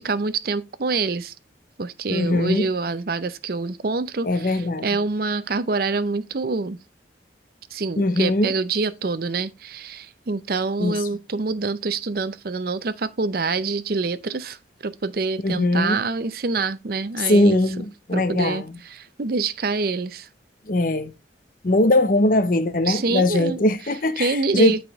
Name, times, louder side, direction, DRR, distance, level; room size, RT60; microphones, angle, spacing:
voice 1, 0.0-1.3 1.8-6.8 7.7-14.6 14.8-17.6 18.1-20.3 22.9-23.6 24.2-24.8, right 4 dB, 55° right, 0.6 m, -26 dB
voice 2, 2.1-2.7 4.2-4.9 8.0-8.5 10.8-11.0 15.4-16.0 17.2-18.8 20.7-21.1 21.6-24.8, left 1 dB, 45° left, 0.7 m, -20 dB
9.1 x 5.0 x 3.5 m
head